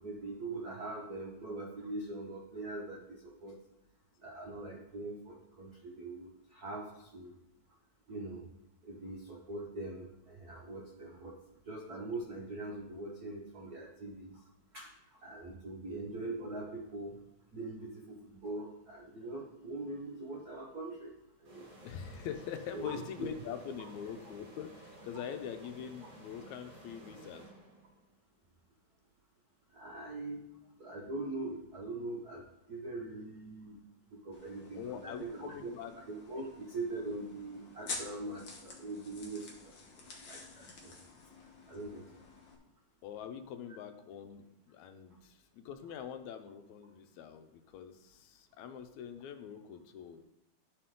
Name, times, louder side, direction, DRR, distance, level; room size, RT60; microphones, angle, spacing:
voice 1, 0.0-3.5 4.2-7.3 8.1-8.5 8.8-11.3 11.6-14.4 14.7-14.9 15.2-17.2 17.5-21.1 21.4-21.7 22.7-22.9 23.2-23.3 29.7-30.4 30.8-32.4 32.7-33.8 34.2-35.7 36.1-39.7 40.3-40.9 41.7-42.0, right 2 dB, 80° right, -2 dB, 0.8 m, -42 dB
sound 1, 21.4-28.1, right 1 dB, 55° right, 3.5 m, -54 dB
voice 2, 21.8-27.5 34.8-36.0 43.0-50.2, left 8 dB, 80° left, 8 dB, 2.0 m, -44 dB
sound 2, 34.3-42.6, left 3 dB, 55° left, 1.4 m, -49 dB
11.5 x 4.6 x 3.7 m, 0.83 s
omnidirectional pair, 3.4 m